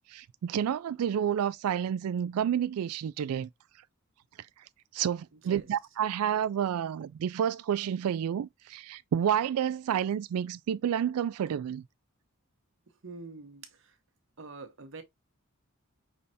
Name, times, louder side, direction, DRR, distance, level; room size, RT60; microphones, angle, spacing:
voice 1, 0.1-3.5 4.9-11.8, right 9 dB, 90° right, 0.3 m, -30 dB
voice 2, 5.3-5.7 12.9-14.0 14.4-15.0, right 3 dB, 60° right, 0.9 m, -45 dB
5.4 x 3.2 x 2.7 m
head